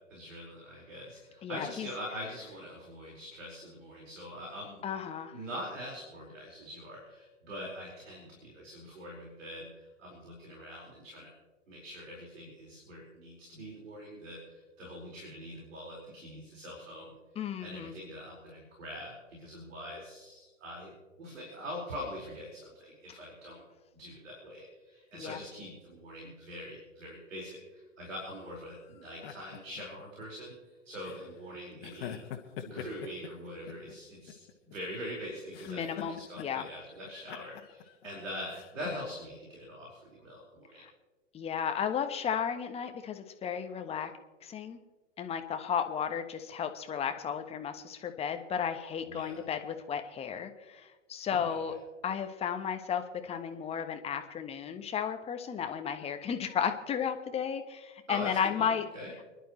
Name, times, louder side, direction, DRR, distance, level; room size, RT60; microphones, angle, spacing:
voice 1, 0.1-4.8 5.3-11.3 11.7-17.1 17.6-23.6 23.9-32.2 32.6-40.8 49.1-49.4 51.3-51.7 58.1-59.1, equal, 70° right, -3 dB, 4.9 m, -43 dB
voice 2, 1.4-1.9 4.8-5.3 17.4-17.9 25.1-25.4 35.7-36.6 41.3-44.1 44.4-44.8 45.2-51.7 52.0-58.8, left 7 dB, 15° left, 7 dB, 1.1 m, -34 dB
sound 1, 28.1-30.2 31.0-31.3 31.8-33.9 34.3-35.2 35.5-36.8 37.1-38.1 38.5-39.3, left 10 dB, 50° left, 1.8 m, -45 dB
29.0 x 11.5 x 3.1 m, 1.2 s
figure-of-eight pair, 115°, 38 cm